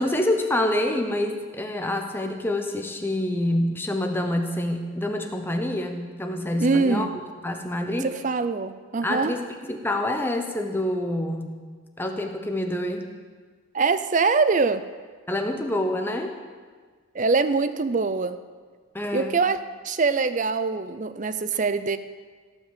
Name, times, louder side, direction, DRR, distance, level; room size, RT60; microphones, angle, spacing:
voice 1, 0.0-7.1 7.4-8.1 9.0-11.5 12.0-13.1 15.3-16.4 18.9-19.4, left 1 dB, 10° left, 4 dB, 0.9 m, -27 dB
voice 2, 6.6-7.1 8.0-9.3 13.7-14.8 17.1-18.4 19.1-19.6 19.8-22.0, right 4 dB, 35° right, 12 dB, 0.5 m, -23 dB
17.0 x 6.1 x 7.4 m, 1.5 s
head